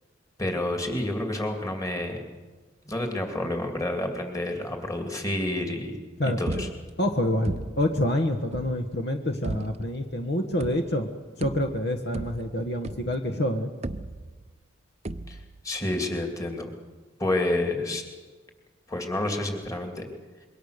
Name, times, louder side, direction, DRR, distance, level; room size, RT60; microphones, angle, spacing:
voice 1, 0.4-2.2 2.9-6.0 6.2-6.7 15.3-16.7 17.2-18.0 18.9-20.1, left 1 dB, 15° left, 4 dB, 2.6 m, -29 dB
sound 1, 6.5-7.1 7.4-8.0 8.5-8.9 9.4-10.0 10.6-11.1 11.4-13.3 13.8-14.6 15.0-15.6, right 2 dB, 35° right, 0.6 m, -36 dB
voice 2, 7.0-11.1 11.4-13.7, left 1 dB, 55° left, 5 dB, 1.4 m, -27 dB
26.5 x 23.0 x 6.7 m, 1.4 s
head